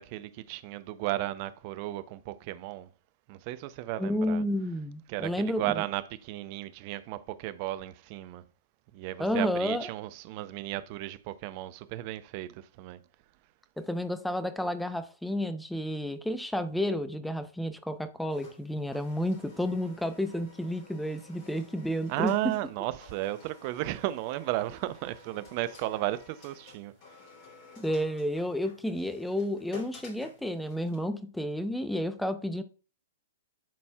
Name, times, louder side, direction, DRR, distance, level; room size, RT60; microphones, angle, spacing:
voice 1, 0.0-2.9 3.3-4.4 5.1-8.4 8.9-13.0 22.1-26.9, right 15 dB, 40° right, 0.5 m, -34 dB
voice 2, 4.0-5.8 9.2-9.9 13.8-22.5 27.8-32.6, left 1 dB, 5° left, 0.6 m, -31 dB
sound 1, 18.3-31.0, left 3 dB, 40° left, 2.8 m, -53 dB
10.5 x 4.2 x 2.3 m
figure-of-eight pair, 110°, 0 cm